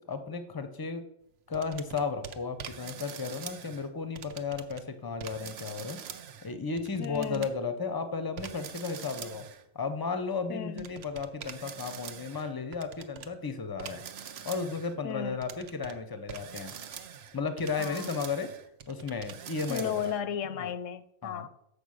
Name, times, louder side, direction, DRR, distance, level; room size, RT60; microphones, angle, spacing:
voice 1, 0.1-1.0 1.5-6.0 6.4-9.4 9.7-14.0 14.4-16.7 17.3-18.5 18.9-20.1 20.6-20.7 21.2-21.5, left 4 dB, 25° left, 9 dB, 0.5 m, -34 dB
sound 1, 1.5-3.9 4.2-4.8 5.2-7.5 8.4-9.6 10.8-13.3 13.8-14.9 15.4-16.0 16.3-20.2, right 8 dB, 65° right, 0.8 m, -44 dB
voice 2, 7.0-7.5 10.5-10.8 15.0-15.4 17.8-18.1 19.7-21.5, left 8 dB, 85° left, 14 dB, 0.9 m, -35 dB
7.1 x 4.9 x 6.4 m, 0.79 s
omnidirectional pair, 1.3 m